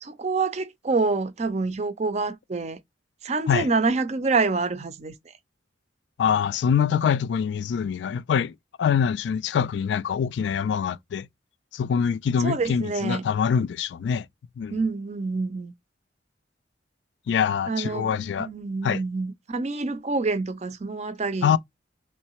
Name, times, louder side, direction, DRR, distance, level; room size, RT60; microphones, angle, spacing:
voice 1, 0.0-2.8 3.2-5.1 12.4-13.3 14.7-15.7 17.7-18.1 18.4-21.6, right 4 dB, 35° right, 0.5 m, -27 dB
voice 2, 6.2-8.5 8.8-11.3 11.7-14.3 14.6-14.8 17.3-18.5 18.8-19.0 21.4-21.6, left 7 dB, 70° left, 0.3 m, -24 dB
3.6 x 3.2 x 3.0 m
head